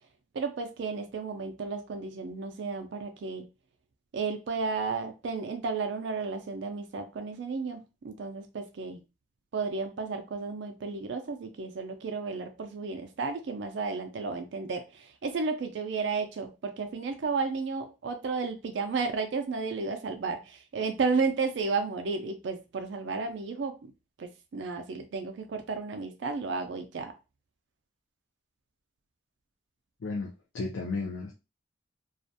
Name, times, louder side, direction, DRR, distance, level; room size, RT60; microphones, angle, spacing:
voice 1, 0.3-3.5 4.1-9.0 9.5-23.8 24.2-27.2, right 4 dB, 65° right, 0.4 m, -33 dB
voice 2, 30.0-31.3, left 3 dB, 75° left, 0.4 m, -34 dB
2.4 x 2.1 x 2.6 m
head